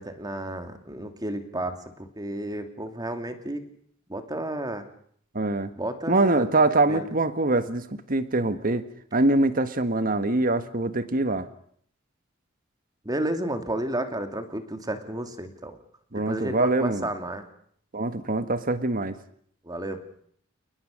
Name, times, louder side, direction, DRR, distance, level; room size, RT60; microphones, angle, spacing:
voice 1, 0.0-3.6 4.1-4.9 5.7-6.5 6.9-7.1 13.0-15.8 16.3-17.4 19.6-20.0, right 1 dB, 20° right, 7 dB, 2.6 m, -32 dB
voice 2, 5.3-5.7 6.1-8.8 9.1-11.5 16.1-17.1 17.9-19.2, right 2 dB, 45° right, 11 dB, 1.5 m, -24 dB
29.5 x 20.0 x 6.6 m, 0.62 s
head